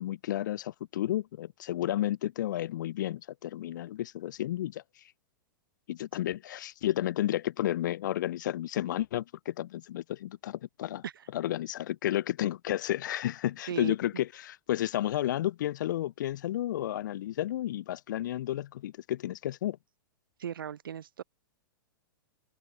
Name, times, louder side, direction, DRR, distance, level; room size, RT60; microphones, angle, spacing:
voice 1, 0.0-5.1 5.9-11.0 11.3-19.8, left 13 dB, 60° left, 0.4 m, -32 dB
voice 2, 20.4-21.2, right 9 dB, 70° right, 0.4 m, -37 dB
open air
figure-of-eight pair, 105°, 12 cm